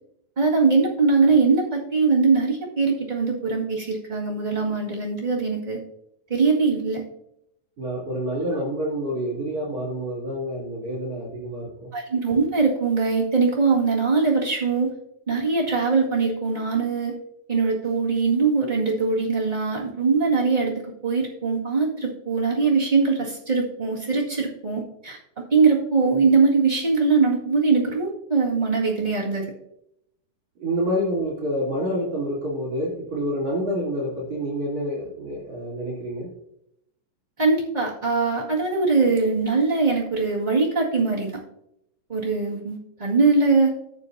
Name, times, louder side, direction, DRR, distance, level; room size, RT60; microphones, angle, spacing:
voice 1, 0.4-5.8 6.3-7.0 11.9-14.9 15.3-17.1 17.5-20.7 21.0-29.4 37.4-41.4 42.1-43.7, right 4 dB, 25° right, -5 dB, 1.0 m, -22 dB
voice 2, 7.8-11.6 30.6-36.3, equal, 45° right, -5 dB, 3.8 m, -27 dB
13.0 x 7.5 x 2.7 m, 0.78 s
omnidirectional pair, 4.1 m